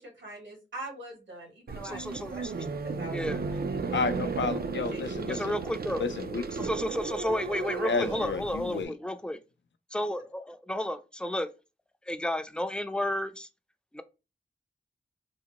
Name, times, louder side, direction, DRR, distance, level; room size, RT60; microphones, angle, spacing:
voice 1, 0.0-2.4 2.8-3.4 3.7-4.0 4.7-5.4, right 2 dB, 80° right, 1.7 m, -43 dB
sound 1, 1.7-8.8, right 4 dB, 55° right, 0.4 m, -34 dB
voice 2, 1.8-2.7 3.1-3.4 5.3-6.0 6.5-9.4 9.9-11.5 12.1-13.5 13.9-14.0, left 1 dB, 5° left, 0.5 m, -32 dB
voice 3, 3.9-5.5 6.0-6.4 7.8-8.9, left 5 dB, 75° left, 0.5 m, -31 dB
3.9 x 2.1 x 2.8 m
cardioid pair, 45°, 19 cm